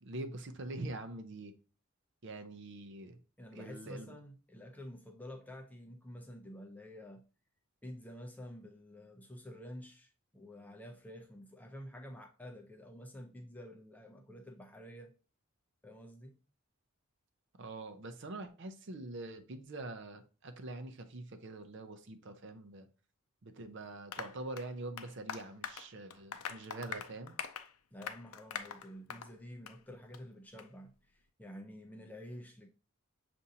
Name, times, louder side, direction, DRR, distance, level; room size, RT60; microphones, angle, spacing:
voice 1, 0.0-1.5 2.2-3.2 3.5-4.1 17.6-22.9 23.4-27.4, right 2 dB, 55° right, 0.5 m, -44 dB
voice 2, 3.4-7.2 7.8-15.1 15.8-16.4 27.9-32.7, equal, 5° left, 0.5 m, -49 dB
Applause, 24.1-29.3 29.7-29.8 30.1-30.2 30.6-30.7, left 7 dB, 80° left, 0.5 m, -44 dB
6.9 x 2.6 x 2.7 m
head